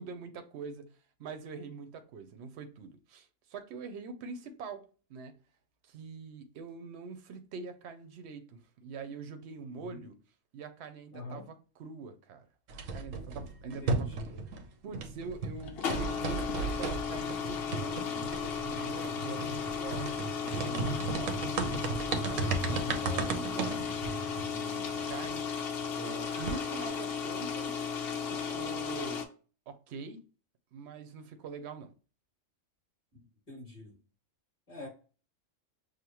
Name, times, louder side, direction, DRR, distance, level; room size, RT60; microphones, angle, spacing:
voice 1, 0.0-5.3 5.8-10.2 10.5-12.5 12.9-14.4 14.8-18.2 18.6-19.5 19.8-20.1 20.3-27.9 28.3-29.2 29.7-30.2 30.7-31.9, right 4 dB, 65° right, 0.9 m, -44 dB
voice 2, 11.1-11.5 13.6-14.3 22.6-23.0 33.5-33.9 34.7-34.9, left 2 dB, 30° left, 2.2 m, -44 dB
sound 1, 12.7-14.7 14.9-25.4 25.8-25.9 26.2-26.9, right 4 dB, 90° right, 1.1 m, -36 dB
sound 2, 15.6-29.2, left 6 dB, 60° left, 0.8 m, -35 dB
6.5 x 2.2 x 2.9 m
omnidirectional pair, 1.3 m